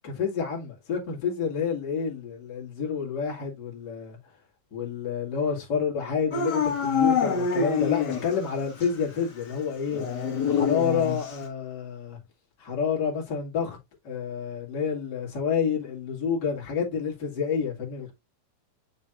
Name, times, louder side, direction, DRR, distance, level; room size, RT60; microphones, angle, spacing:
voice 1, 0.0-4.2 4.7-10.0 10.4-12.2 12.6-13.8 14.0-18.2, left 6 dB, 30° left, 2.4 m, -29 dB
Dog / Siren, 6.3-8.5 8.8-8.9 9.9-11.4, left 6 dB, 80° left, 0.9 m, -26 dB
7.1 x 6.4 x 2.5 m
omnidirectional pair, 4.4 m